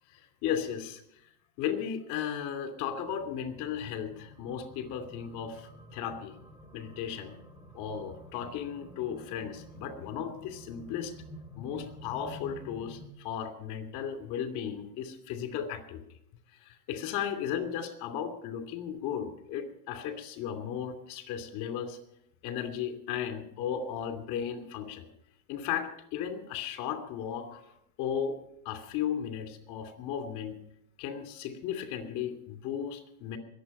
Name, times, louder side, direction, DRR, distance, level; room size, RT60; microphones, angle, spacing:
voice 1, 0.1-1.0 1.6-6.3 6.7-7.3 7.7-11.1 11.6-16.0 16.6-22.0 22.4-25.1 25.5-27.6 28.0-28.4 28.6-30.5 31.0-33.4, left 8 dB, 55° left, 6 dB, 2.8 m, -35 dB
sound 1, 3.1-13.1, equal, 10° right, 2.8 m, -50 dB
21.5 x 8.0 x 5.5 m, 0.75 s
hypercardioid pair, 95°, 45 cm